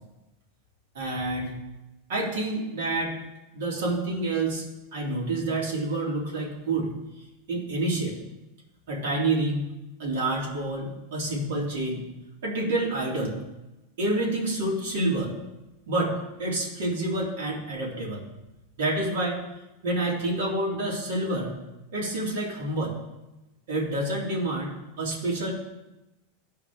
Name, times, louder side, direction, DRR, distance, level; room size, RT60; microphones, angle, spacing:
voice 1, 0.9-1.6 2.1-3.1 3.5-4.6 4.9-6.9 7.5-8.2 8.9-9.7 10.0-12.0 12.4-13.4 14.0-15.3 15.9-18.2 18.8-19.4 19.8-21.5 21.9-23.0 23.7-25.5, right 2 dB, 75° right, -3 dB, 2.6 m, -28 dB
13.5 x 4.8 x 3.5 m, 0.99 s
supercardioid pair, 170°, 0 cm